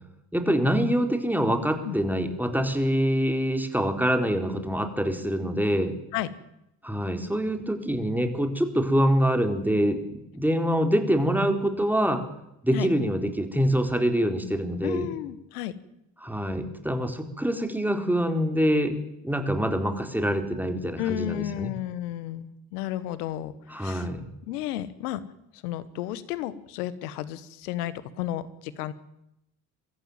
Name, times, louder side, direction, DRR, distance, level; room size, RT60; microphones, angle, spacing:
voice 1, 0.3-5.9 6.8-12.2 12.6-15.1 16.2-18.9 19.2-21.7 23.7-24.3, equal, 5° right, 6 dB, 4.2 m, -25 dB
voice 2, 14.8-15.7 21.0-24.1 24.4-25.2 25.5-28.9, left 13 dB, 85° left, 16 dB, 1.2 m, -33 dB
23.5 x 14.0 x 9.4 m, 0.84 s
hypercardioid pair, 45°, 45 cm